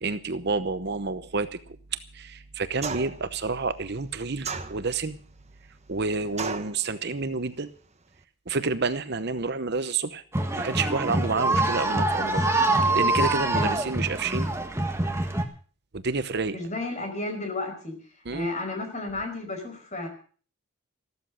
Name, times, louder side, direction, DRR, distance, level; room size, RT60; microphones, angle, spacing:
voice 1, 0.0-1.6 2.1-5.2 5.9-7.7 8.5-10.2 10.6-12.4 12.9-14.5 15.9-16.6 18.3-18.5, right 4 dB, 50° right, 12 dB, 0.9 m, -29 dB
sound 1, 2.8-3.3 4.4-5.1 6.4-6.8, right 4 dB, 30° right, 1.2 m, -33 dB
sound 2, 10.3-15.4, right 2 dB, 10° right, 1.6 m, -25 dB
voice 2, 16.5-17.9 18.3-20.1, left 2 dB, 35° left, 5 dB, 4.9 m, -32 dB
14.0 x 13.5 x 6.3 m, 0.42 s
head